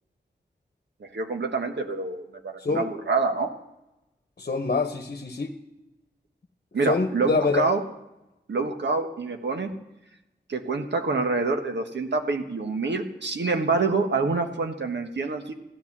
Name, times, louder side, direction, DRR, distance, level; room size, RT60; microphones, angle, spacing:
voice 1, 1.1-3.5 6.7-7.8 8.5-9.7 10.5-15.5, right 3 dB, 80° right, 4 dB, 1.5 m, -26 dB
voice 2, 2.6-2.9 4.4-5.5 6.8-7.7, left 4 dB, 55° left, 5 dB, 1.1 m, -25 dB
15.5 x 11.0 x 7.4 m, 0.96 s
cardioid pair, 55°, 18 cm